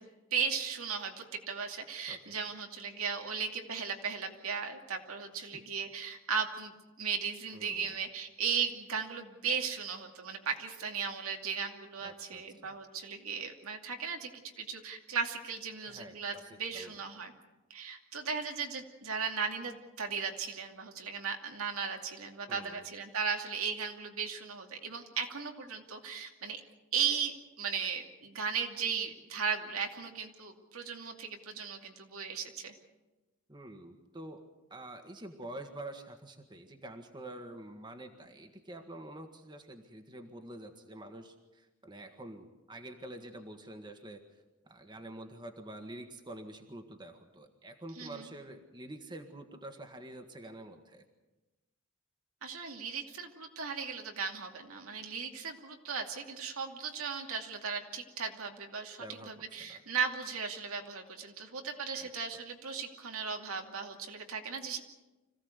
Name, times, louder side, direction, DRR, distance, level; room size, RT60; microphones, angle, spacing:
voice 1, 0.0-14.3 14.6-17.3 17.7-26.6 26.9-32.7 48.0-48.2 52.4-64.8, right 6 dB, 85° right, 3 dB, 2.5 m, -36 dB
voice 2, 7.5-7.9 12.0-12.8 15.9-17.0 22.5-22.8 33.5-34.4 34.7-44.2 44.6-51.0 59.0-59.8 61.9-62.4, right 1 dB, 20° right, 5 dB, 1.7 m, -47 dB
26.0 x 16.0 x 8.1 m, 1.1 s
head